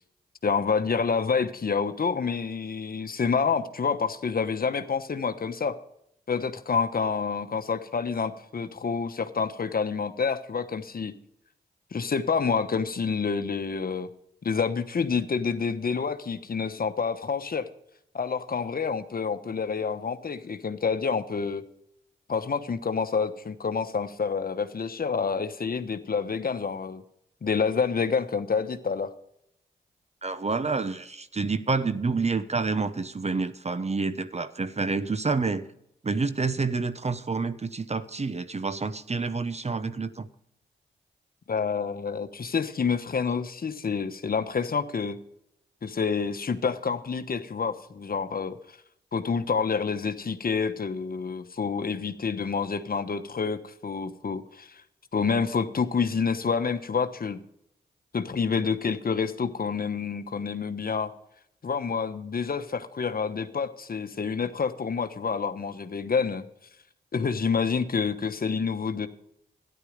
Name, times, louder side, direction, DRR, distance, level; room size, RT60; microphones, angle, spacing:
voice 1, 0.4-5.8 6.3-11.1 11.9-14.1 14.4-17.7 18.1-21.6 22.3-27.0 27.4-29.1 41.5-45.2 45.8-48.6 49.1-54.8 55.1-57.4 58.1-61.1 61.6-66.4 67.1-69.1, left 5 dB, 50° left, 1.1 m, -28 dB
voice 2, 30.2-35.7 36.0-40.3, right 4 dB, 35° right, 1.0 m, -28 dB
12.5 x 10.5 x 5.1 m
supercardioid pair, 40°, 19 cm